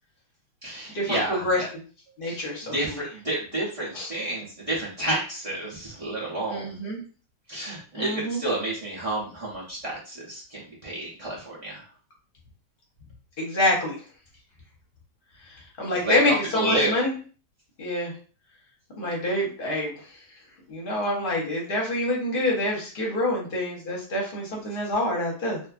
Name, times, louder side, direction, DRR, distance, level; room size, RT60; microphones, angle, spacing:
voice 1, 0.6-1.7 2.2-6.8 7.5-11.9 15.9-17.0, right 1 dB, 55° right, -7 dB, 0.3 m, -30 dB
voice 2, 2.2-2.7 3.9-4.1 6.5-7.0 7.9-8.4 13.4-14.0 15.5-17.1 17.8-18.1 19.0-19.9 20.7-25.6, left 1 dB, 40° left, -2 dB, 0.9 m, -26 dB
2.7 x 2.5 x 2.4 m, 0.39 s
omnidirectional pair, 1.9 m